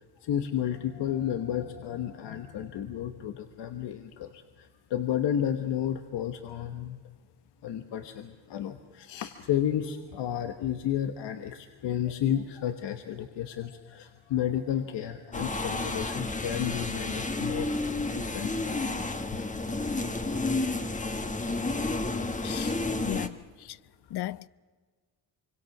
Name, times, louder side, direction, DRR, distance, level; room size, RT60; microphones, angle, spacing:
voice 1, 0.2-7.0 7.6-17.8 18.1-18.9 22.6-22.7, left 10 dB, 85° left, 1.3 m, -32 dB
sound 1, 15.3-23.3, left 2 dB, 20° left, 1.3 m, -31 dB
voice 2, 22.4-22.8 23.0-23.8 24.1-24.5, left 15 dB, 70° left, 0.6 m, -36 dB
25.0 x 25.0 x 6.0 m
cardioid pair, 100°, 41 cm